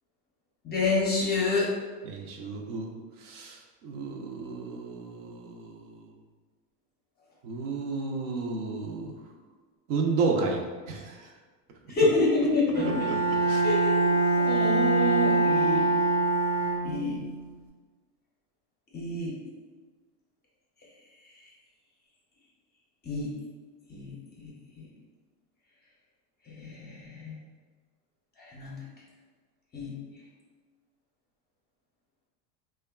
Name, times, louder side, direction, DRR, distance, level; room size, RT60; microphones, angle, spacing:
voice 1, 0.6-1.7 11.9-13.1 13.6-15.9 16.8-17.2 18.9-19.3 23.0-23.3 23.9-24.1 24.4-24.5 24.8-24.9 26.6-27.3 28.4-28.8 29.7-29.9, left 2 dB, 20° left, -5 dB, 0.6 m, -28 dB
voice 2, 2.1-2.9 3.2-5.8 7.4-9.1 9.9-10.6 10.9-11.3 13.5-13.6, right 4 dB, 60° right, 1 dB, 0.6 m, -32 dB
Bowed string instrument, 12.7-17.3, right 2 dB, 80° right, 1.2 m, -24 dB
2.8 x 2.3 x 2.2 m, 1.4 s
supercardioid pair, 115°, 48 cm